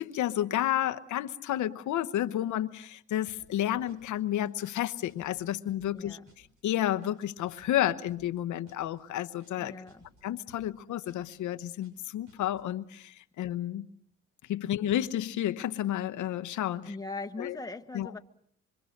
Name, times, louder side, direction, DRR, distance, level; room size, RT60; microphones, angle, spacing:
voice 1, 0.0-6.2 6.6-9.7 10.2-13.9 14.5-16.9 17.4-17.6 17.9-18.1, left 12 dB, 75° left, 0.9 m, -31 dB
sound 1, 3.3-3.6 3.9-4.2 4.5-4.8 5.1-5.4 5.7-6.0 6.3-6.6 6.9-7.2 7.5-7.8 8.1-8.4 8.7-9.0 9.3-9.6 9.9-10.2 10.5-10.8 11.1-11.4 11.7-12.0 12.3-12.6, right 1 dB, 90° right, 7.4 m, -60 dB
voice 2, 5.9-6.2 9.6-10.1 16.9-18.2, left 3 dB, 10° left, 1.2 m, -40 dB
26.0 x 24.5 x 6.5 m
cardioid pair, 90°, 30 cm